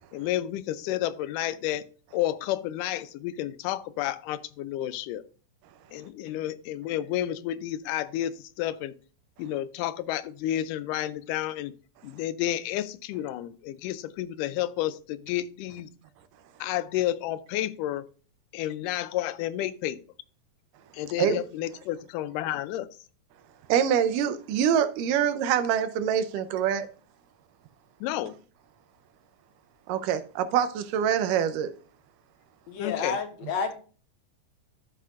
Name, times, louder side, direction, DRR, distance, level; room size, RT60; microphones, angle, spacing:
voice 1, 0.1-1.8 2.1-5.2 5.9-8.9 9.4-11.7 12.0-15.9 16.6-18.0 18.5-20.0 20.9-22.9 28.0-28.4 32.8-33.2, left 13 dB, 85° left, 2.1 m, -31 dB
voice 2, 23.7-26.9 29.9-31.7, right 8 dB, 85° right, 2.4 m, -25 dB
voice 3, 32.7-33.7, left 5 dB, 70° left, 1.8 m, -30 dB
13.0 x 5.8 x 2.5 m
omnidirectional pair, 3.7 m